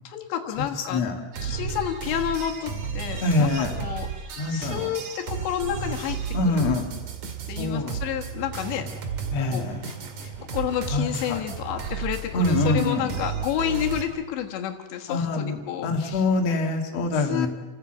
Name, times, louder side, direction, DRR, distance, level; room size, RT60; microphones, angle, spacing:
voice 1, 0.1-1.0 1.4-3.5 3.8-4.1 4.5-6.2 6.4-6.8 7.5-8.9 9.5-9.9 10.2-16.2 17.1-17.5, left 10 dB, 75° left, 3 dB, 3.6 m, -30 dB
sound 1, 1.3-14.0, right 7 dB, 50° right, 3.0 m, -33 dB
voice 2, 3.2-3.8 4.4-4.9 6.3-6.9 7.6-8.0 9.3-9.8 10.9-11.4 12.3-13.2 15.1-17.5, left 3 dB, 45° left, 2 dB, 2.7 m, -25 dB
28.5 x 15.5 x 7.9 m, 1.3 s
omnidirectional pair, 5.2 m